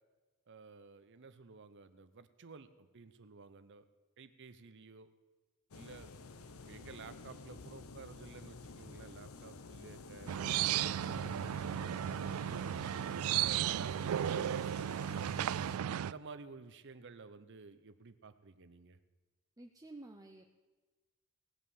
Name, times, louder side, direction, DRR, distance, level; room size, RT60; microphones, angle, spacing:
voice 1, 0.5-3.9 4.2-5.1 5.7-11.9 13.1-19.0, right 4 dB, 60° right, 11 dB, 0.7 m, -53 dB
sound 1, 5.7-15.8, left 3 dB, 90° left, 0.9 m, -51 dB
sound 2, 10.3-16.1, right 10 dB, 80° right, 0.3 m, -34 dB
voice 2, 19.6-20.5, right 2 dB, 15° right, 3 dB, 0.7 m, -52 dB
18.0 x 8.3 x 7.2 m, 1.3 s
head